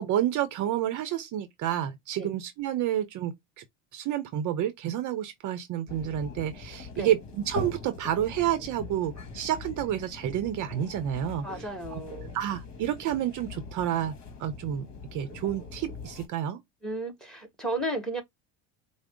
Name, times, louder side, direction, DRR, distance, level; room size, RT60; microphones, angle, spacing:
voice 1, 0.0-3.6 3.9-11.4 12.3-14.1 14.4-14.9 15.1-16.6, right 11 dB, 50° right, 0.7 m, -29 dB
sound 1, 5.9-16.3, left 3 dB, 45° left, 1.4 m, -42 dB
voice 2, 11.4-12.4 16.8-18.2, right 1 dB, ahead, 1.7 m, -33 dB
4.7 x 2.1 x 3.7 m
supercardioid pair, 90°, 39 cm